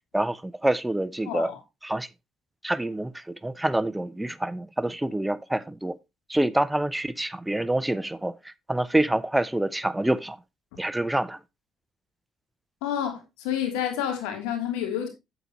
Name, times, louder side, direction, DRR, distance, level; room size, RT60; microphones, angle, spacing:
voice 1, 0.1-1.5 1.8-2.1 2.6-3.1 3.4-6.0 6.3-8.3 8.7-10.4 10.8-11.4, right 1 dB, 10° right, 0.5 m, -26 dB
voice 2, 1.2-1.6 12.8-15.1, left 9 dB, 90° left, 2.9 m, -29 dB
9.0 x 8.3 x 3.0 m
supercardioid pair, 75°, 0 cm